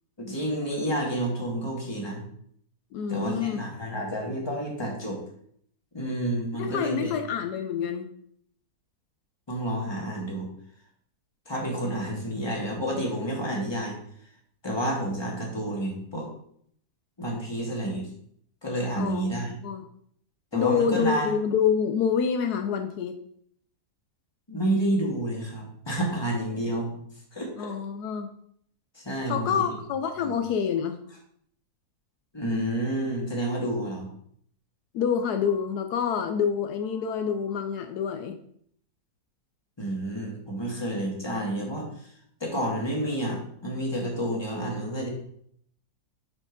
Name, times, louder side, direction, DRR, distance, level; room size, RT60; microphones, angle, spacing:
voice 1, 0.2-2.2 3.1-5.2 5.9-7.1 9.5-10.5 11.5-14.0 14.6-16.3 17.2-18.1 18.6-19.5 20.5-21.4 24.5-27.0 27.3-27.7 29.0-29.7 30.2-30.3 32.3-34.1 39.8-41.9 42.4-45.1, right 1 dB, 15° left, -2 dB, 1.8 m, -29 dB
voice 2, 2.9-3.6 6.5-8.1 19.0-19.9 20.5-23.2 27.6-28.3 29.3-31.0 34.9-38.4, left 7 dB, 80° left, 7 dB, 1.2 m, -27 dB
7.0 x 4.5 x 5.2 m, 0.66 s
omnidirectional pair, 1.7 m